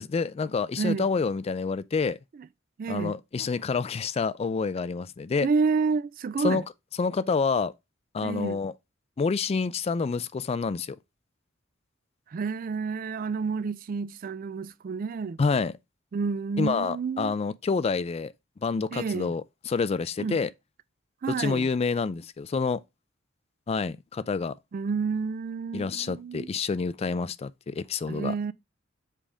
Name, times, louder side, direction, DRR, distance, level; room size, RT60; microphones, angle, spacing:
voice 1, 0.0-2.2 2.9-5.5 6.4-6.6 7.0-7.7 8.1-8.7 9.2-11.0 15.4-15.7 16.6-18.3 18.6-20.5 21.3-22.8 23.7-24.6 25.7-28.3, left 4 dB, 30° left, 0.3 m, -28 dB
voice 2, 0.8-1.1 2.8-3.2 5.4-6.6 8.2-8.6 12.3-15.4 16.1-17.3 18.9-19.3 20.2-20.4 21.2-21.7 24.7-26.5 28.1-28.5, right 5 dB, 45° right, 0.3 m, -29 dB
7.5 x 3.5 x 4.9 m
head